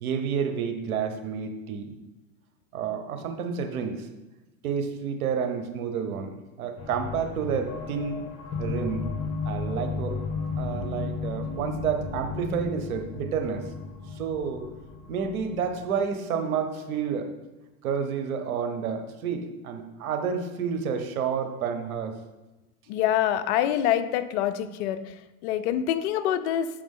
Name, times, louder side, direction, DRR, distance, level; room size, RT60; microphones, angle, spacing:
voice 1, 0.0-1.9 2.7-4.1 4.6-8.2 8.6-9.1 9.4-13.7 14.1-14.7 15.1-17.3 17.8-22.2, right 6 dB, 80° right, 7 dB, 1.0 m, -30 dB
sound 1, 6.8-16.0, left 4 dB, 30° left, 1.6 m, -34 dB
voice 2, 22.9-26.7, left 11 dB, 55° left, 11 dB, 0.6 m, -26 dB
7.0 x 5.1 x 3.7 m, 1.1 s
hypercardioid pair, 120°, 42 cm